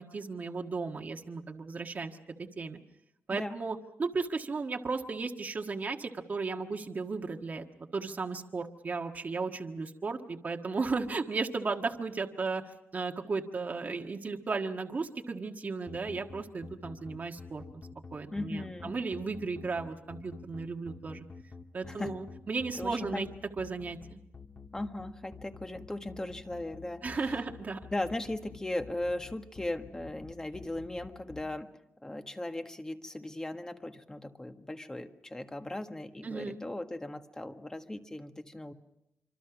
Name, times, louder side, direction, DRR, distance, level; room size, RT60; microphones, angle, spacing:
voice 1, 0.0-2.2 2.6-2.8 3.3-17.8 18.1-21.2 21.7-23.3 23.6-24.2 27.0-27.8 36.2-36.6, right 4 dB, 40° right, 3 dB, 1.6 m, -35 dB
sound 1, 15.9-31.4, left 4 dB, 30° left, 1.9 m, -48 dB
voice 2, 18.3-18.9 21.9-22.2 22.8-23.3 24.7-27.4 27.9-31.7 32.0-38.7, left 1 dB, 15° left, 6 dB, 1.6 m, -38 dB
26.0 x 25.5 x 6.0 m, 0.81 s
wide cardioid pair, 140°, 5 cm